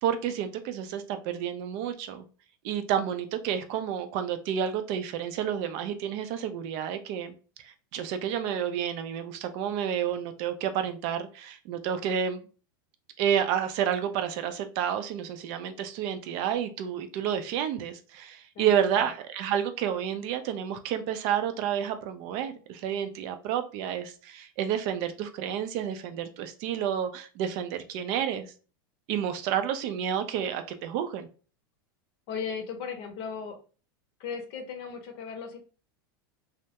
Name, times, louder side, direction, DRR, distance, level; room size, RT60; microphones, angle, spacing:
voice 1, 0.0-2.2 2.6-7.3 7.6-12.4 13.2-28.5 29.1-31.3, right 9 dB, 55° right, 8 dB, 0.4 m, -30 dB
voice 2, 18.5-19.0 32.3-33.6 34.2-35.6, left 6 dB, 50° left, 5 dB, 0.7 m, -37 dB
2.2 x 2.0 x 2.8 m, 0.37 s
supercardioid pair, 115°, 12 cm